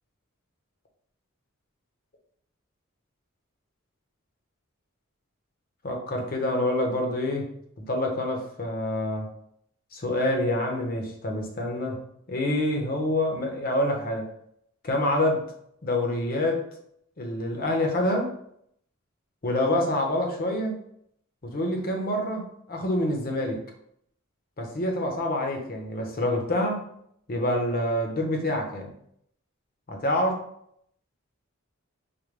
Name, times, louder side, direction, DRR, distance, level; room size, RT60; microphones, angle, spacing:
voice 1, 5.8-7.5 7.8-9.3 9.9-12.0 12.3-14.3 14.8-15.4 15.8-16.6 17.2-18.3 19.4-20.8 21.4-23.6 24.6-26.8 27.3-28.9 29.9-30.3, left 1 dB, 45° left, 2 dB, 0.8 m, -26 dB
5.1 x 2.1 x 3.2 m, 0.71 s
head